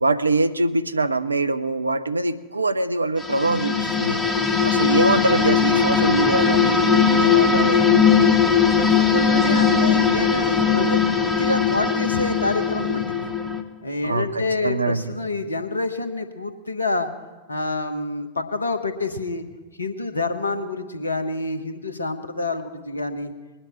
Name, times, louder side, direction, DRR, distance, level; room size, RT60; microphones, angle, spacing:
voice 1, 0.0-4.2 4.6-8.3 14.0-15.0, right 3 dB, 80° right, 12 dB, 0.5 m, -23 dB
sound 1, 3.2-13.6, left 6 dB, 15° left, 1.2 m, -19 dB
voice 2, 8.5-13.3 13.8-17.1 17.5-19.4 19.8-23.3, left 2 dB, 80° left, 9 dB, 1.0 m, -27 dB
21.0 x 9.5 x 4.5 m, 1.2 s
figure-of-eight pair, 90°, 0 cm